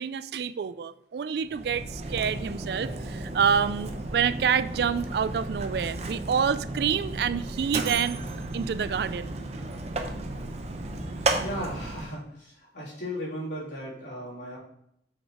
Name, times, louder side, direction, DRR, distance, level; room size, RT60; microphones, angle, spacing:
voice 1, 0.0-8.2 8.5-9.4, right 7 dB, 60° right, 14 dB, 0.3 m, -27 dB
Mechanisms, 1.4-12.2, right 2 dB, 35° right, 0.7 m, -34 dB
voice 2, 11.3-14.6, equal, 75° left, -6 dB, 3.1 m, -36 dB
6.4 x 4.7 x 4.8 m, 0.76 s
head